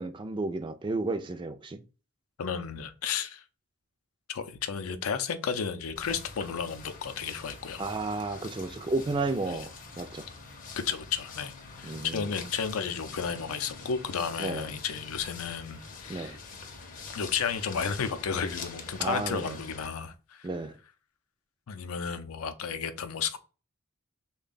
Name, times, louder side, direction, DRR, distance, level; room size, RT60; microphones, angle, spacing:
voice 1, 0.0-1.8 7.8-9.7 10.0-10.2 11.8-12.3 14.4-14.7 16.1-16.4 19.0-19.6 20.4-20.7, right 3 dB, 20° right, 0.3 m, -32 dB
voice 2, 2.4-3.4 4.3-7.8 9.5-9.7 10.8-16.4 17.1-20.5 21.7-23.4, left 6 dB, 85° left, 0.5 m, -33 dB
sound 1, 6.0-19.9, left 4 dB, 40° left, 0.6 m, -45 dB
3.4 x 2.2 x 3.8 m
head